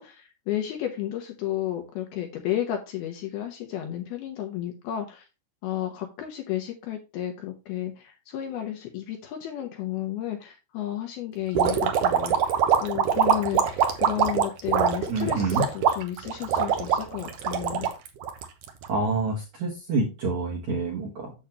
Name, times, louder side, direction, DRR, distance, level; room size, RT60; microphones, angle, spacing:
voice 1, 0.0-5.2 5.6-12.5 12.8-17.9, left 12 dB, 70° left, 3 dB, 2.5 m, -32 dB
sound 1, 11.5-18.9, right 8 dB, 85° right, 1.8 m, -23 dB
voice 2, 15.1-15.6 18.9-21.3, right 3 dB, 60° right, -2 dB, 2.0 m, -27 dB
8.5 x 7.2 x 2.9 m, 0.27 s
omnidirectional pair, 5.3 m